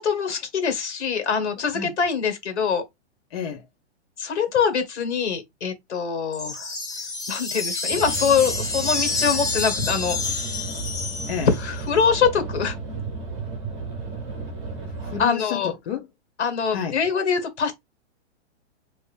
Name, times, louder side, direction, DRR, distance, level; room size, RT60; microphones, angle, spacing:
voice 1, 0.0-2.8 4.2-6.7 7.3-10.5 11.5-12.8 15.2-15.7 16.4-17.7, left 6 dB, 75° left, 1.7 m, -24 dB
voice 2, 3.3-3.6 11.3-11.5 15.0-16.1 16.7-17.0, left 8 dB, 55° left, 0.9 m, -30 dB
sound 1, 6.3-11.8, left 3 dB, 10° left, 0.6 m, -28 dB
sound 2, 7.9-15.2, right 4 dB, 25° right, 1.1 m, -33 dB
2.8 x 2.6 x 3.4 m
hypercardioid pair, 150°, 35 cm